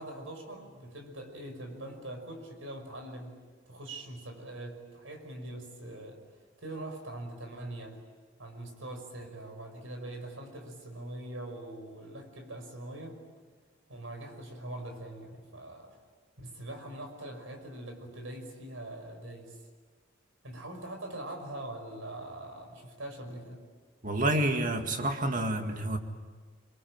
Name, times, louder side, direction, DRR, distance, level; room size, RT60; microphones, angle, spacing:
voice 1, 0.0-6.2 6.6-8.0 8.4-13.2 13.9-16.0 16.4-19.6 20.4-23.6, right 1 dB, 80° right, 5 dB, 5.8 m, -42 dB
voice 2, 24.0-26.0, right 1 dB, 40° right, 5 dB, 2.1 m, -28 dB
26.0 x 23.5 x 8.9 m, 1.4 s
head